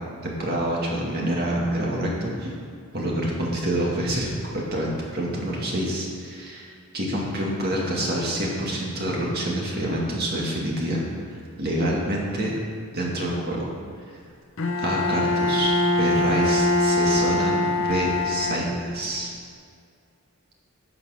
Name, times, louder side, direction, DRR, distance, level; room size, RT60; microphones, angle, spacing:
voice 1, 0.2-2.5 2.9-6.7 6.9-11.0 11.3-12.5 12.9-13.7 14.8-19.3, right 1 dB, 45° right, -3 dB, 2.2 m, -27 dB
Bowed string instrument, 14.6-19.1, left 2 dB, 55° left, 0.8 m, -23 dB
12.0 x 6.7 x 6.5 m, 2.2 s
head